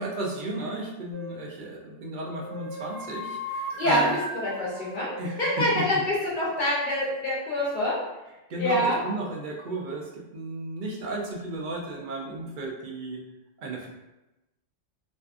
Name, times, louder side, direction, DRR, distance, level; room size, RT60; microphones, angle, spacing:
voice 1, 0.0-4.2 5.2-6.0 8.5-13.2 13.6-13.9, right 2 dB, 60° right, -1 dB, 0.5 m, -34 dB
sound 1, 1.1-1.5 2.3-5.8, equal, 25° right, 0.8 m, -38 dB
voice 2, 3.7-4.1 4.3-5.1 5.4-8.0 8.6-9.0, left 1 dB, 50° left, -5 dB, 0.7 m, -25 dB
2.5 x 2.4 x 2.3 m, 0.99 s
omnidirectional pair, 1.2 m